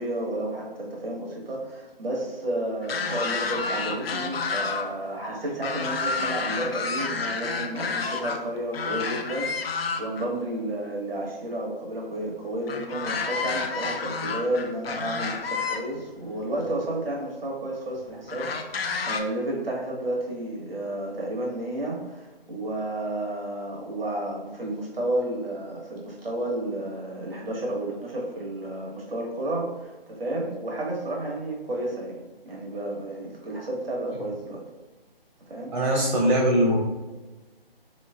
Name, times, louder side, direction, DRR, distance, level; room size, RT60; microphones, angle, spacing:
voice 1, 0.0-32.1 32.4-34.6 35.5-35.7, right 1 dB, 70° right, -2 dB, 1.1 m, -31 dB
sound 1, 2.8-4.9 5.2-8.4 8.7-10.3 12.7-15.8 16.7-16.8 18.3-19.2, left 4 dB, 75° left, 0.5 m, -30 dB
voice 2, 35.7-36.8, equal, 50° right, -3 dB, 0.8 m, -21 dB
3.1 x 3.0 x 2.3 m, 1.2 s
figure-of-eight pair, 155°, 30 cm